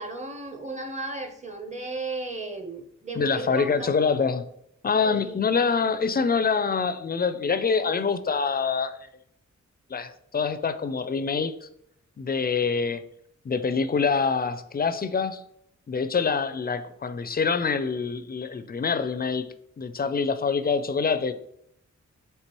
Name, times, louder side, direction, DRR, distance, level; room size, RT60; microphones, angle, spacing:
voice 1, 0.0-3.9 5.0-5.3, right 3 dB, 20° right, 5 dB, 0.7 m, -35 dB
voice 2, 3.2-4.5 4.8-9.1 9.9-11.7 12.2-13.0 13.4-15.4 15.9-21.3, left 5 dB, 30° left, 11 dB, 0.4 m, -25 dB
4.3 x 3.3 x 3.0 m, 0.74 s
cardioid pair, 55°, 31 cm